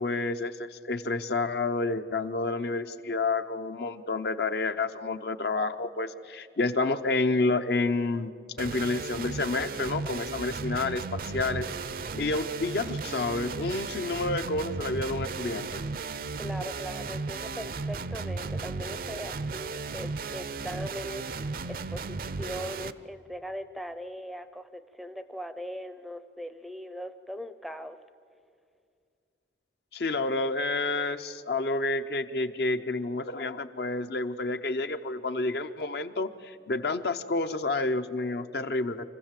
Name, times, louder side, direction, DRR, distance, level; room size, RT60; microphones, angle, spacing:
voice 1, 0.0-8.3 8.6-11.7 12.2-15.8 29.9-39.0, left 3 dB, 65° left, 9 dB, 0.7 m, -29 dB
sound 1, 8.6-22.9, right 4 dB, 50° right, 0.5 m, -35 dB
voice 2, 16.4-28.0, equal, ahead, 10 dB, 0.5 m, -40 dB
25.0 x 15.5 x 7.5 m, 2.3 s
head